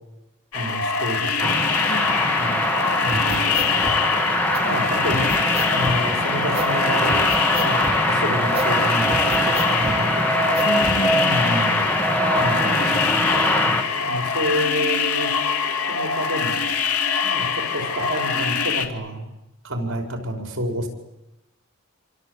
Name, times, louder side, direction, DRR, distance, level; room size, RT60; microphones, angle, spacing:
sound 1, 0.5-18.9, left 6 dB, 85° left, 2.3 m, -24 dB
voice 1, 0.5-1.7 2.4-2.7 3.0-3.7 4.6-7.2 7.5-10.4 11.2-11.8 12.4-13.0 13.6-15.3 15.9-16.6 17.2-19.3 19.6-20.9, equal, 60° right, 4 dB, 5.1 m, -29 dB
sound 2, 1.4-13.8, equal, 5° left, 2.1 m, -23 dB
voice 2, 1.9-2.4 10.6-11.7 12.5-13.4, equal, 65° left, 4 dB, 5.9 m, -32 dB
sound 3, 3.0-4.0 4.5-4.6 5.0-6.0 6.5-6.7 7.0-8.0 8.5-8.7 9.0-10.0 10.5-11.0, right 2 dB, 25° right, 2.6 m, -31 dB
27.0 x 25.0 x 8.2 m, 0.96 s
head